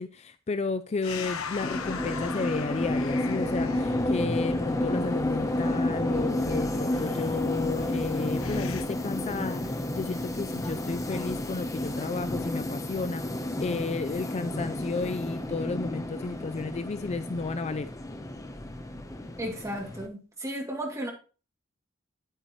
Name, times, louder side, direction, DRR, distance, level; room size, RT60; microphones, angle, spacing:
voice 1, 0.0-9.6 9.9-13.2 13.6-17.9, left 4 dB, 30° left, 0.4 m, -32 dB
sound 1, 1.0-8.9, left 4 dB, 85° left, 1.0 m, -39 dB
sound 2, 1.6-20.1, left 1 dB, 15° left, 0.8 m, -31 dB
voice 2, 19.4-21.1, equal, 15° right, 2.5 m, -34 dB
9.0 x 8.9 x 3.1 m
head